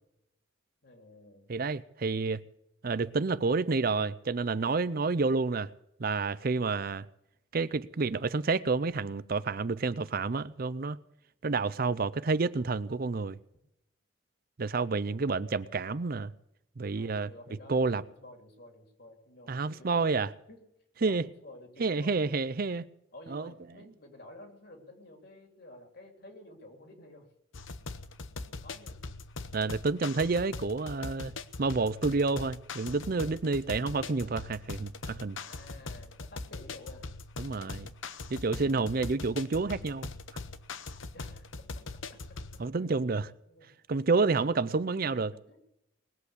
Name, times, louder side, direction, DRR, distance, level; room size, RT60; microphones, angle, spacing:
voice 1, 0.8-1.5 17.0-20.2 20.5-20.6 21.0-22.2 23.1-27.3 28.6-29.0 34.0-34.3 35.3-37.2 38.4-39.2 41.1-41.8 42.1-43.1 43.5-43.7 45.1-45.6, left 1 dB, 55° left, 3.4 m, -52 dB
voice 2, 1.5-2.4 2.8-5.7 6.0-7.0 7.5-11.0 11.4-13.4 14.6-16.3 16.8-17.3 17.7-18.0 19.5-20.3 21.0-21.3 21.8-22.8 23.3-23.5 29.5-31.3 31.6-35.4 37.4-37.9 38.3-40.1 42.6-43.3 43.9-45.3, right 4 dB, 50° right, 0.5 m, -29 dB
sound 1, 27.5-42.7, left 3 dB, 80° left, 0.9 m, -42 dB
20.0 x 8.2 x 8.2 m
head